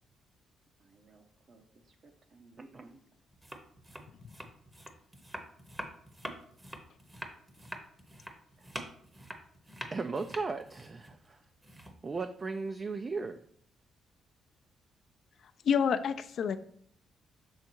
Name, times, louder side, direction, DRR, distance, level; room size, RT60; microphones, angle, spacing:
voice 1, 0.8-3.0, right 2 dB, 45° right, 4 dB, 0.8 m, -58 dB
sound 1, 3.3-12.2, right 1 dB, 15° right, 0.8 m, -45 dB
voice 2, 9.9-11.4 12.0-13.4, right 4 dB, 30° right, 8 dB, 0.3 m, -36 dB
voice 3, 15.6-16.6, left 7 dB, 60° left, 9 dB, 0.4 m, -28 dB
6.4 x 3.5 x 4.5 m, 0.62 s
cardioid pair, 115°, 0 cm